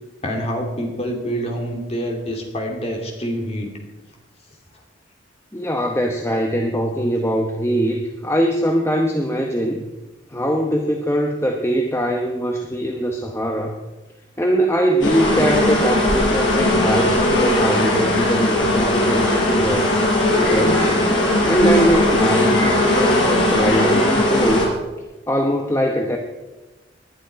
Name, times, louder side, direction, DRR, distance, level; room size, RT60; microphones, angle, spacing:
voice 1, 0.2-3.7, equal, 35° left, 2 dB, 2.7 m, -26 dB
voice 2, 5.5-9.8 10.3-13.8 14.4-19.9 20.3-20.9 21.4-24.7 25.3-26.2, equal, 15° left, 2 dB, 0.9 m, -22 dB
sound 1, 15.0-24.7, left 1 dB, 85° left, 4.8 m, -18 dB
19.0 x 10.5 x 4.6 m, 1.1 s
head